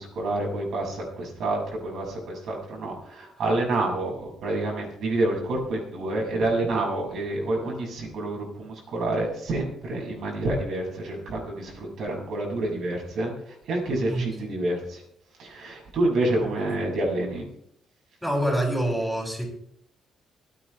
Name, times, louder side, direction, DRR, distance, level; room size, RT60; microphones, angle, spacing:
voice 1, 0.0-13.3 13.7-15.0 15.4-17.4, right 2 dB, 65° right, -1 dB, 6.9 m, -28 dB
voice 2, 18.2-19.5, right 1 dB, ahead, -2 dB, 7.6 m, -26 dB
24.5 x 9.7 x 3.5 m, 0.70 s
cardioid pair, 90°, 0 cm